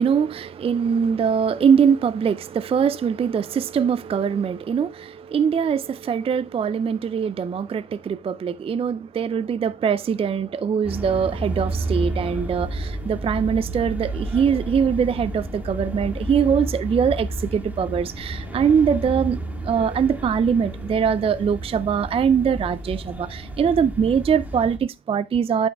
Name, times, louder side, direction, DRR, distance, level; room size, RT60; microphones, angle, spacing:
voice 1, 0.0-25.7, right 7 dB, 30° right, 0.3 m, -22 dB
sound 1, 10.8-24.8, right 1 dB, 10° right, 1.9 m, -31 dB
11.5 x 5.3 x 2.3 m
cardioid pair, 90°, 20 cm